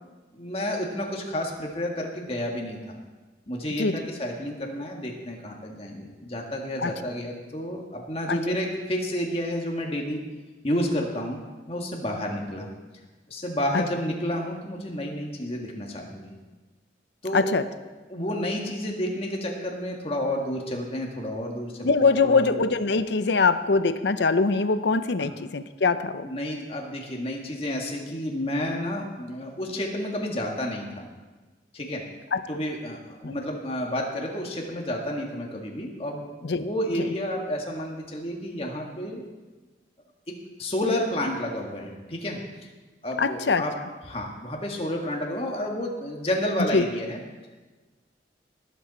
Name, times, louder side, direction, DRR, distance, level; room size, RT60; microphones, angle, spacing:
voice 1, 0.3-3.0 3.5-10.2 10.6-11.4 11.7-12.7 13.3-16.4 17.2-17.5 18.1-22.5 25.2-25.3 26.2-31.1 31.7-32.0 32.5-39.2 40.3-42.4 43.0-43.7 44.0-47.2, left 1 dB, 30° left, 0 dB, 1.8 m, -30 dB
voice 2, 17.3-17.6 21.8-26.2 32.3-32.4 33.2-33.4 36.4-36.6 37.0-37.1 43.2-43.6 46.7-46.8, left 4 dB, 75° left, 12 dB, 0.6 m, -23 dB
19.5 x 8.4 x 4.2 m, 1.3 s
head